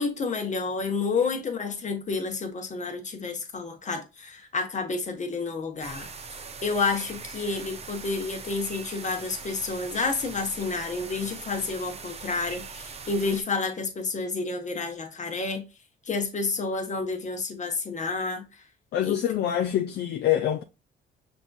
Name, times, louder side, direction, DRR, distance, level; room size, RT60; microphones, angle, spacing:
voice 1, 0.0-6.1 6.6-15.6 16.1-18.4 19.0-19.2, left 4 dB, 35° left, 1.0 m, -30 dB
sound 1, 5.8-13.4, right 5 dB, 30° right, 0.5 m, -41 dB
voice 2, 18.9-20.6, left 11 dB, 60° left, 0.4 m, -25 dB
5.8 x 2.6 x 2.3 m
cardioid pair, 90°, 20 cm